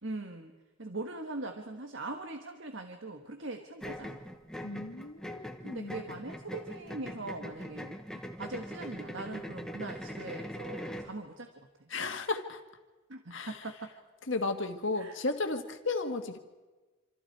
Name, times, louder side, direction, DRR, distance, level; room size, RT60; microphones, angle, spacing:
voice 1, 0.0-4.2 5.6-11.9 13.1-13.9 14.9-15.2, right 2 dB, 55° right, 4 dB, 1.7 m, -41 dB
sound 1, 3.8-11.2, equal, 5° left, 1.3 m, -42 dB
voice 2, 4.6-5.9 11.9-12.6 13.3-13.5 14.3-16.4, left 3 dB, 60° left, 5 dB, 1.8 m, -34 dB
27.5 x 27.0 x 4.8 m, 1.2 s
head